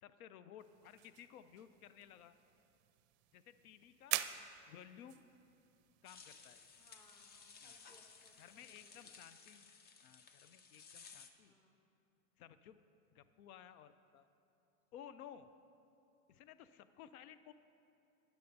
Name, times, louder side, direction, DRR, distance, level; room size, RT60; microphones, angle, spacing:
voice 1, 0.0-2.3 3.3-4.2 4.7-5.2 6.0-6.6 7.6-7.8 8.4-9.7 10.0-11.5 12.4-12.8 13.1-14.3 14.9-15.5 16.3-17.5, left 9 dB, 90° left, 13 dB, 0.5 m, -56 dB
sound 1, 0.6-9.1, right 15 dB, 55° right, 0.5 m, -48 dB
sound 2, 6.0-11.3, left 5 dB, 25° left, 0.5 m, -58 dB
voice 2, 6.8-9.2 11.4-11.8, left 1 dB, 10° left, 3 dB, 0.9 m, -69 dB
12.0 x 10.5 x 2.6 m, 2.8 s
supercardioid pair, 110°, 42 cm